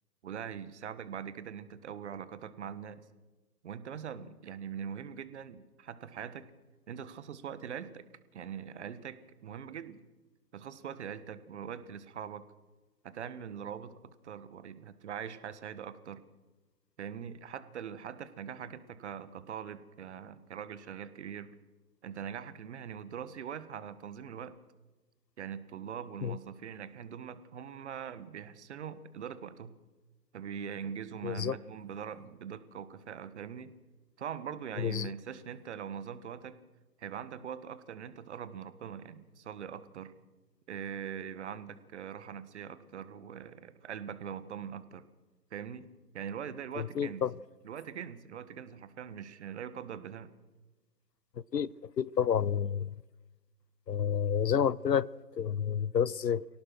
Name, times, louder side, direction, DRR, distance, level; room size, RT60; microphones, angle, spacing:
voice 1, 0.2-3.0 3.6-6.5 6.9-8.0 8.3-10.0 10.5-12.4 13.0-16.2 17.0-21.5 22.0-24.5 25.4-29.8 30.3-33.7 34.2-36.6 37.0-40.1 40.7-45.0 45.5-45.9 46.1-47.2 47.6-50.3, right 8 dB, 45° right, 1.5 m, -42 dB
voice 2, 31.2-31.6 34.8-35.1 46.7-47.4 51.5-51.7 52.0-52.9 53.9-56.5, left 8 dB, 85° left, 0.8 m, -30 dB
25.0 x 17.5 x 6.1 m
figure-of-eight pair, 135°, 48 cm